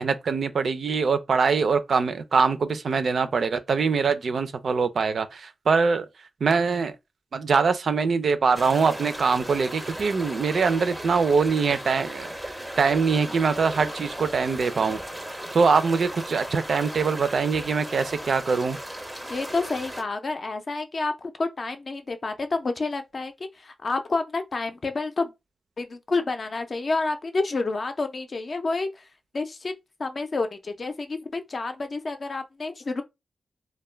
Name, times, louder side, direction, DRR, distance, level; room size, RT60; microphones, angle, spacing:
voice 1, 0.0-6.1 6.4-6.9 7.3-12.3 12.8-15.0 15.5-18.8, right 5 dB, 70° right, 0.4 m, -23 dB
sound 1, 8.5-20.0, right 1 dB, 5° right, 0.5 m, -37 dB
voice 2, 19.3-23.3 23.6-25.3 25.8-29.0 29.3-29.7 30.0-33.0, left 3 dB, 50° left, 0.4 m, -29 dB
2.2 x 2.1 x 3.1 m
wide cardioid pair, 90°, 0 cm